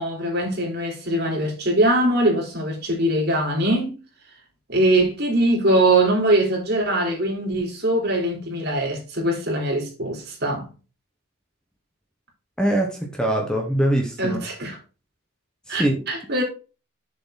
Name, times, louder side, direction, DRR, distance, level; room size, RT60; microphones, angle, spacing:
voice 1, 0.0-4.0 4.7-10.7 14.2-14.8 15.7-16.4, right 1 dB, 50° right, 3.5 m, -22 dB
voice 2, 12.6-14.4 15.7-16.1, right 1 dB, 5° left, 1.2 m, -22 dB
7.1 x 6.9 x 3.9 m
head